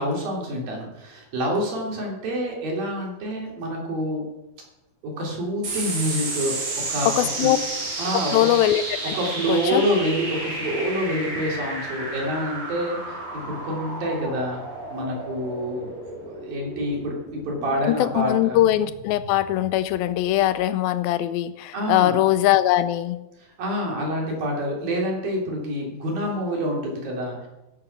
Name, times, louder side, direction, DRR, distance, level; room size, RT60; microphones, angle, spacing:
voice 1, 0.0-4.3 5.0-6.6 6.9-7.1 7.4-7.5 8.0-8.5 9.2-14.6 14.9-15.9 16.2-18.6 21.7-22.3 23.6-27.5, equal, 70° right, -1 dB, 5.1 m, -27 dB
sound 1, 5.6-20.4, right 2 dB, 85° right, 6.6 m, -32 dB
voice 2, 7.2-7.6 8.1-9.2 9.5-9.9 17.9-23.2, left 13 dB, 80° left, 14 dB, 2.3 m, -21 dB
15.5 x 8.9 x 6.0 m, 0.97 s
omnidirectional pair, 4.3 m